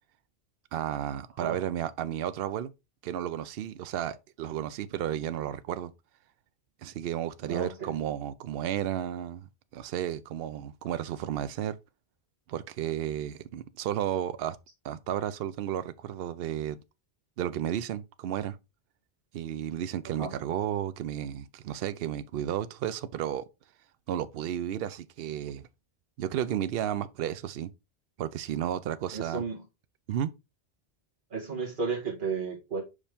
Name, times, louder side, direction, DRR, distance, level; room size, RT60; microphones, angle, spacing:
voice 1, 0.7-2.7 3.0-5.9 6.8-11.8 12.5-14.6 14.8-16.8 17.4-18.6 19.3-23.5 24.1-25.7 26.2-27.7 28.2-29.4 30.1-30.3, right 10 dB, 70° right, 0.7 m, -33 dB
voice 2, 1.3-1.6 7.4-8.0 20.0-20.4 29.1-29.6 31.3-32.8, right 5 dB, 55° right, 2.0 m, -34 dB
5.5 x 5.0 x 3.4 m
omnidirectional pair, 1.0 m